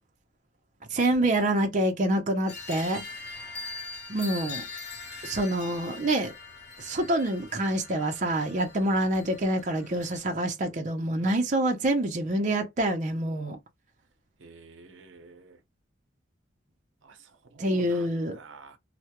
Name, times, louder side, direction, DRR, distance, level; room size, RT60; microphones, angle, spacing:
voice 1, 0.9-3.6 4.1-4.7 5.2-6.3 6.8-13.6 17.6-18.4, right 1 dB, 40° right, 0.5 m, -27 dB
sound 1, 2.5-10.2, left 4 dB, 55° left, 0.9 m, -42 dB
voice 2, 14.4-15.6 17.0-18.1 18.3-18.8, right 4 dB, 85° right, 0.6 m, -50 dB
2.2 x 2.0 x 2.8 m
head